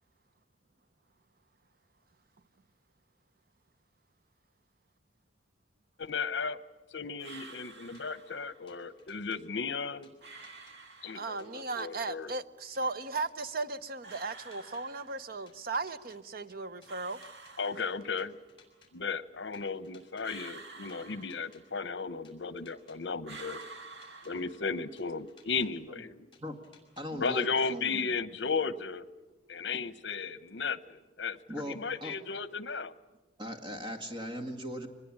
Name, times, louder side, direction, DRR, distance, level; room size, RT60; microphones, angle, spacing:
voice 1, 6.0-6.6 6.9-10.1 11.0-12.3 17.6-18.4 18.9-23.6 24.2-26.3 27.1-29.0 29.5-31.4 31.7-32.9, left 5 dB, 70° left, 15 dB, 0.9 m, -35 dB
sound 1, 7.2-8.7 10.2-11.7 14.0-15.6 16.9-18.4 20.2-22.0 23.2-25.1, right 3 dB, 70° right, 2.1 m, -50 dB
sound 2, 7.9-8.0 8.7-9.4 10.0-10.8 11.4-12.1 12.7-13.5 14.1-14.8 15.5-16.2 16.8-17.5 18.2-18.9 19.5-20.3 20.9-21.6 22.2-23.0 23.6-24.3 25.0-25.7 26.3-27.0, left 5 dB, 25° left, 5.4 m, -61 dB
voice 2, 11.1-17.2, right 3 dB, 55° right, 13 dB, 0.8 m, -36 dB
voice 3, 27.0-28.1 31.5-32.2 33.4-34.9, equal, 25° right, 5 dB, 2.1 m, -39 dB
24.5 x 20.5 x 8.8 m, 1.1 s
head